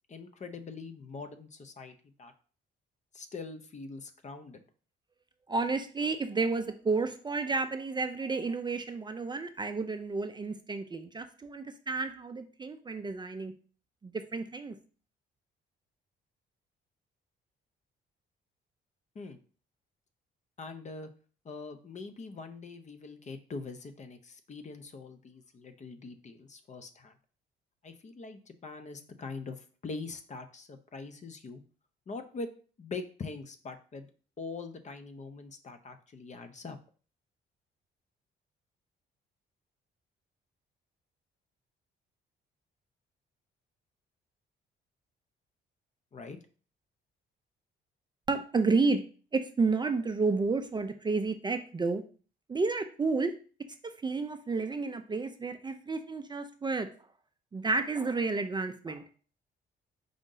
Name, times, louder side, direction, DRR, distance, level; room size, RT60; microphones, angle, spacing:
voice 1, 0.1-2.3 3.1-4.6 19.1-19.4 20.6-21.1 21.4-27.1 27.8-31.6 32.1-32.5 32.8-34.1 34.4-36.8 46.1-46.4, left 4 dB, 35° left, 9 dB, 0.6 m, -43 dB
voice 2, 5.5-13.5 14.0-14.8 48.3-49.0 49.3-52.0 52.5-53.3 54.0-56.9 57.5-59.0, right 4 dB, 20° right, 7 dB, 0.4 m, -31 dB
5.0 x 2.6 x 3.8 m, 0.39 s
cardioid pair, 90°, 20 cm